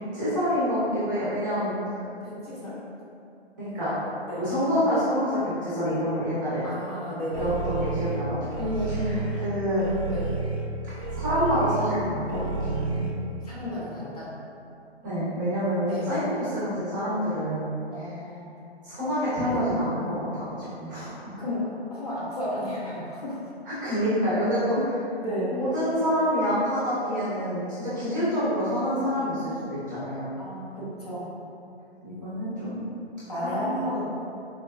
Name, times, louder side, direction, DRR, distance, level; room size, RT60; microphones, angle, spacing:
voice 1, 0.0-1.8 3.6-3.9 4.4-6.7 7.4-8.5 8.9-9.9 11.2-13.0 15.0-18.1 18.8-21.4 23.7-24.8 25.5-30.3 32.0-32.8 33.4-34.0, equal, 20° right, -12 dB, 0.6 m, -27 dB
voice 2, 2.2-2.8 4.3-4.5 6.6-7.6 8.6-9.3 10.1-10.4 13.4-14.3 15.8-16.1 17.9-18.5 19.5-19.6 21.4-23.4 25.2-25.5 30.4-31.3 33.3-34.0, left 1 dB, 35° left, -8 dB, 0.6 m, -33 dB
sound 1, 7.3-13.1, right 4 dB, 65° right, 0.5 m, -31 dB
4.0 x 2.2 x 2.2 m, 2.6 s
hypercardioid pair, 160°, 33 cm